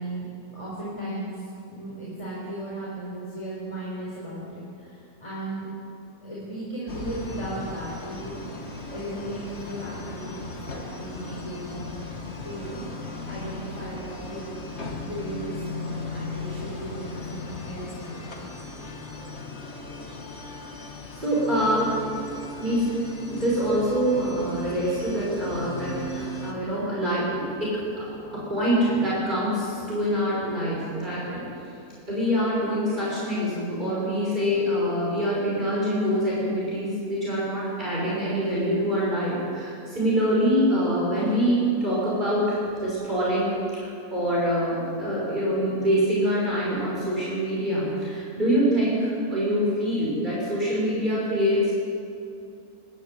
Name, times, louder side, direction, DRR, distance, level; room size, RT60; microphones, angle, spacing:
voice 1, 0.0-5.7 6.2-8.5 8.9-11.9 12.4-12.9 13.2-14.6 15.0-18.2, right 1 dB, 20° left, -6 dB, 4.6 m, -36 dB
sound 1, 6.9-26.5, left 3 dB, 50° left, 2.1 m, -37 dB
voice 2, 21.1-22.0 22.6-22.9 23.3-31.7 32.1-51.7, equal, 30° right, -7 dB, 6.2 m, -25 dB
23.0 x 12.5 x 9.3 m, 2.6 s
omnidirectional pair, 1.5 m